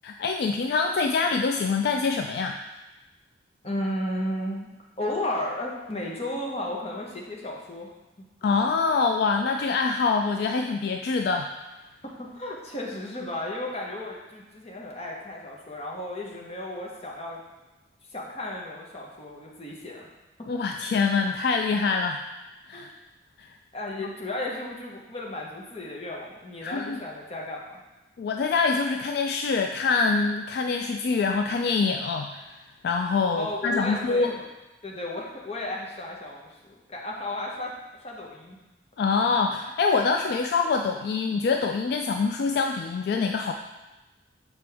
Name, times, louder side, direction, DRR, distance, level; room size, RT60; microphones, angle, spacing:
voice 1, 0.0-2.6 8.4-11.5 20.5-22.2 22.7-22.9 23.4-23.5 26.6-27.0 28.2-32.4 32.8-34.4 39.0-43.5, left 4 dB, 65° left, 4 dB, 0.3 m, -25 dB
voice 2, 3.6-4.7 5.0-8.3 12.0-17.4 18.1-20.1 22.7-22.9 23.7-27.8 33.3-34.5 34.8-37.7 38.0-38.6, left 1 dB, 35° left, -2 dB, 1.1 m, -34 dB
6.7 x 4.2 x 3.4 m, 1.1 s
head